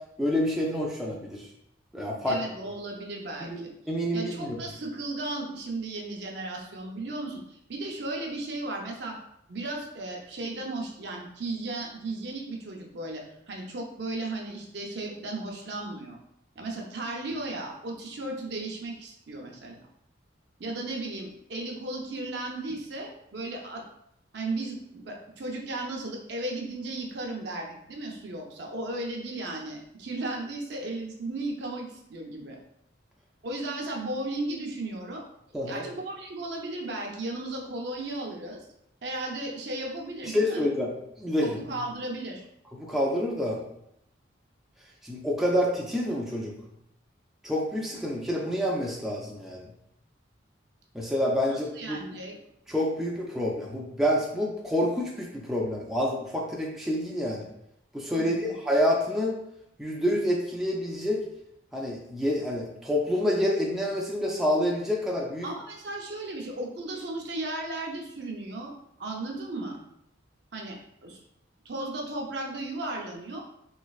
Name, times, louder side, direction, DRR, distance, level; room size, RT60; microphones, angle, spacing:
voice 1, 0.2-1.5 1.9-2.4 3.5-4.6 35.5-35.8 40.3-40.9 41.2-41.6 42.7-43.6 45.0-46.5 47.4-49.7 50.9-52.0 52.7-57.5 57.9-59.4 59.8-61.2 61.7-65.5, left 1 dB, ahead, -3 dB, 0.3 m, -28 dB
voice 2, 2.3-3.7 4.1-9.2 9.5-16.2 16.6-19.9 20.6-23.8 24.3-32.6 33.4-35.2 35.7-38.6 39.0-40.7 41.4-42.4 51.5-52.4 58.2-58.4 65.4-68.7 69.0-69.8 70.5-71.2 71.6-73.4, right 2 dB, 60° right, 0 dB, 0.6 m, -35 dB
3.2 x 3.1 x 2.3 m, 0.78 s
head